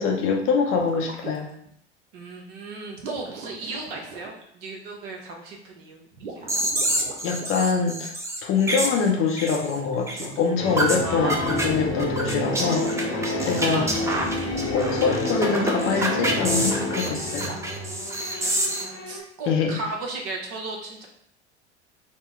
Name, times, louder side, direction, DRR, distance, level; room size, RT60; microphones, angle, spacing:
voice 1, 0.0-1.5 7.2-8.1 8.4-13.9 14.7-17.6 19.5-19.8, left 5 dB, 40° left, 1 dB, 0.6 m, -24 dB
sound 1, 0.7-1.7 3.0-4.4 6.1-7.7 9.7-10.5 13.0-13.8 16.2-17.9, right 3 dB, 80° right, 0.7 m, -41 dB
voice 2, 2.1-6.6 11.0-12.3 13.7-14.3 18.4-21.1, right 2 dB, 50° right, 1 dB, 0.9 m, -36 dB
sound 2, 6.5-9.8 10.1-10.3 10.8-11.0 11.3-11.7 12.0-18.8, right 1 dB, 10° right, 0.4 m, -27 dB
sound 3, 10.6-19.2, left 1 dB, 70° left, 1.0 m, -29 dB
3.6 x 2.1 x 3.6 m, 0.69 s
figure-of-eight pair, 75°, 34 cm